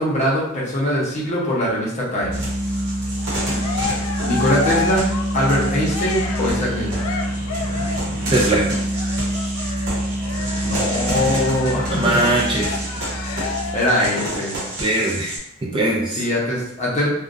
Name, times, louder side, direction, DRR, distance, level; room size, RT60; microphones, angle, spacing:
voice 1, 0.0-2.4 4.2-5.0 5.3-7.1 10.6-12.3 13.7-14.6 16.2-17.1, equal, 35° left, -5 dB, 0.7 m, -22 dB
Musical instrument, 2.2-13.9, right 1 dB, 90° right, 0.5 m, -26 dB
sound 1, 2.3-15.4, right 1 dB, 55° right, 0.9 m, -31 dB
Cheering, 3.2-8.2 8.9-14.5, left 5 dB, 70° left, 0.3 m, -31 dB
voice 2, 8.3-8.7 11.9-12.7 14.8-15.4 15.7-16.2, right 2 dB, 25° right, -3 dB, 0.4 m, -20 dB
2.4 x 2.1 x 2.5 m, 0.78 s
head